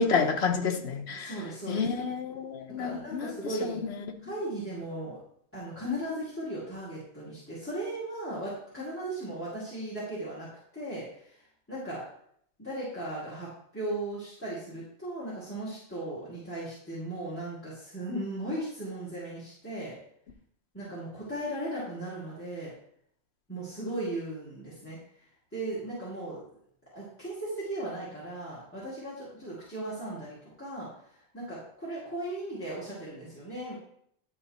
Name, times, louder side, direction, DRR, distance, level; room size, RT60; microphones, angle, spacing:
voice 1, 0.0-1.3 1.7-3.3 3.6-4.2, left 5 dB, 70° left, 1.1 m, -29 dB
voice 2, 1.1-2.0 2.8-3.8 4.2-5.2 5.5-10.5 10.7-11.4 11.7-12.0 12.6-19.9 20.7-22.7 23.5-25.0 25.5-26.4 26.9-33.8, right 1 dB, 10° left, 2.5 m, -37 dB
11.0 x 3.9 x 4.2 m
omnidirectional pair, 1.2 m